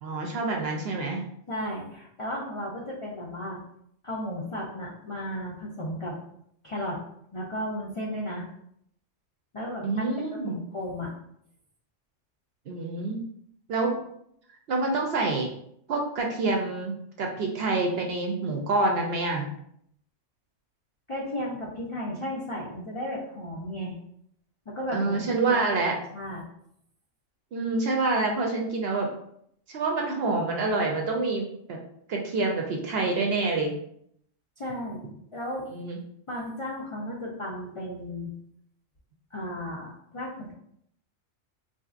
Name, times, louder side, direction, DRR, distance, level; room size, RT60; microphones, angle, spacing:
voice 1, 0.0-1.2 9.8-10.6 12.7-13.2 13.7-14.0 14.7-15.5 15.9-19.5 24.9-26.0 27.5-29.1 29.7-31.8 32.1-33.7 35.7-36.0, right 3 dB, 60° right, 1 dB, 0.7 m, -27 dB
voice 2, 1.5-3.6 4.0-6.1 6.6-7.0 7.3-8.5 9.5-11.1 21.1-24.0 24.7-25.7 26.1-26.4 34.6-35.0 35.3-35.7 36.3-38.3 39.3-40.5, equal, 55° left, -4 dB, 0.3 m, -34 dB
3.7 x 2.7 x 2.4 m, 0.70 s
omnidirectional pair, 1.3 m